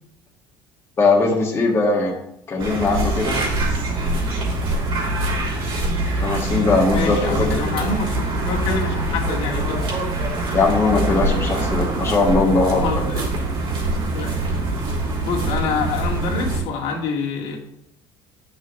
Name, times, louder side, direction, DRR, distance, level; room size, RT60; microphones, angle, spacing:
voice 1, 1.0-2.1 2.5-3.4 6.1-7.9 10.5-12.9, left 3 dB, 25° left, -2 dB, 1.3 m, -20 dB
sound 1, 2.6-16.6, right 2 dB, 55° right, 3.4 m, -24 dB
voice 2, 6.9-9.8 12.8-13.2 14.1-14.3 15.2-17.6, left 4 dB, 70° left, -2 dB, 2.0 m, -26 dB
10.0 x 6.1 x 3.2 m, 0.78 s
cardioid pair, 145°, 10 cm